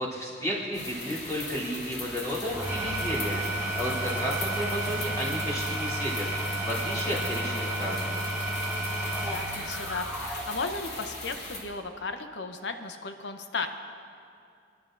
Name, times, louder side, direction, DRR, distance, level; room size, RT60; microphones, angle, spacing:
voice 1, 0.0-8.0, equal, 20° left, -8 dB, 3.2 m, -33 dB
sound 1, 0.7-11.6, left 2 dB, 40° left, 1.9 m, -39 dB
Engine / Tools, 2.4-10.7, right 1 dB, 10° right, 3.2 m, -32 dB
voice 2, 7.0-8.0 9.2-13.7, left 3 dB, 85° left, 6 dB, 0.8 m, -36 dB
26.5 x 11.0 x 2.6 m, 2.4 s
head